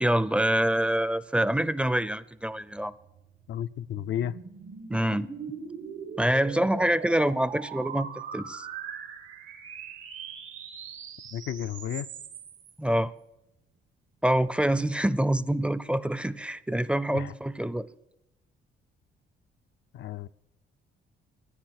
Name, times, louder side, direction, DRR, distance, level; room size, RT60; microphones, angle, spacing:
voice 1, 0.0-2.9 4.9-5.3 6.2-8.7 12.8-13.1 14.2-17.9, right 1 dB, 5° right, 0.5 m, -26 dB
sound 1, 3.0-12.7, right 6 dB, 85° right, 1.9 m, -41 dB
voice 2, 3.5-4.3 11.3-12.1 17.1-17.3 19.9-20.3, left 11 dB, 65° left, 0.4 m, -32 dB
15.0 x 9.6 x 6.4 m
cardioid pair, 90°, 20 cm